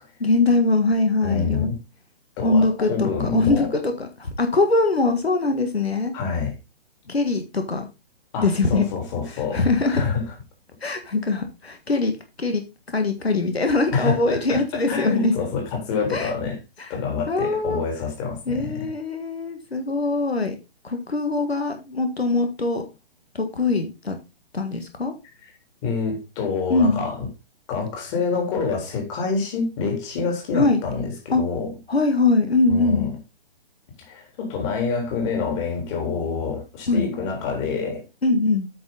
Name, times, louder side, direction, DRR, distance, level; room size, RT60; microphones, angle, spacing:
voice 1, 0.2-1.7 2.4-6.1 7.1-7.9 8.4-8.9 9.3-10.0 10.8-12.6 12.9-15.3 16.1-16.3 16.8-16.9 17.3-17.8 18.5-20.6 20.8-22.8 23.3-24.2 24.5-25.1 26.7-27.1 30.5-30.8 31.3-31.4 31.9-33.1 36.9-37.1 38.2-38.7, left 3 dB, 90° left, 1.8 m, -22 dB
voice 2, 1.2-1.8 2.4-3.7 6.1-6.5 8.3-10.2 13.9-16.6 16.9-18.9 25.8-27.3 27.7-31.7 32.7-33.2 34.1-38.1, left 5 dB, 30° left, 3.6 m, -27 dB
8.8 x 6.4 x 3.9 m
figure-of-eight pair, 140°, 30 cm